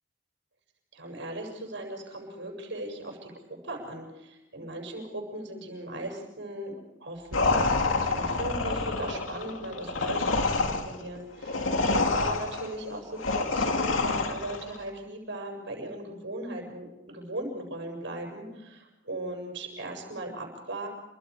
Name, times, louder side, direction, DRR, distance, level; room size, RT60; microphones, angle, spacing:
voice 1, 0.9-6.7 7.0-11.7 11.9-20.9, right 1 dB, 65° right, 2 dB, 7.0 m, -38 dB
sound 1, 7.3-14.7, left 3 dB, 90° left, 2.6 m, -27 dB
30.0 x 24.5 x 5.0 m, 0.97 s
head